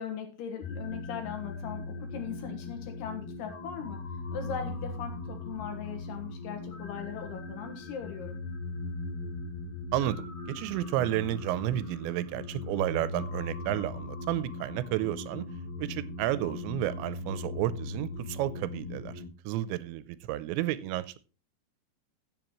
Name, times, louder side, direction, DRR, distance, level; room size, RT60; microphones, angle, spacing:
voice 1, 0.0-4.0 4.3-8.4, left 7 dB, 70° left, 5 dB, 3.4 m, -39 dB
sound 1, 0.6-19.3, left 3 dB, 55° left, 5.3 m, -39 dB
voice 2, 9.9-15.5 15.8-21.2, right 14 dB, 85° right, 16 dB, 2.9 m, -31 dB
15.0 x 7.3 x 3.1 m, 0.33 s
omnidirectional pair, 5.1 m